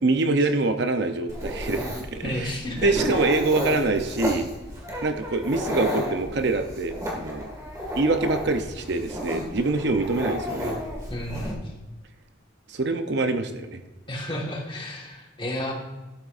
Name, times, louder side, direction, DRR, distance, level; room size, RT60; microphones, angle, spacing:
voice 1, 0.0-4.5 5.0-7.5 8.0-10.7 12.7-13.8, right 3 dB, 55° right, 7 dB, 0.7 m, -25 dB
Dog, 1.3-11.5, equal, 15° right, 1.8 m, -32 dB
voice 2, 2.2-2.9 11.1-11.6 14.1-15.7, left 1 dB, 25° left, 0 dB, 1.5 m, -31 dB
12.0 x 8.5 x 2.5 m, 1.1 s
head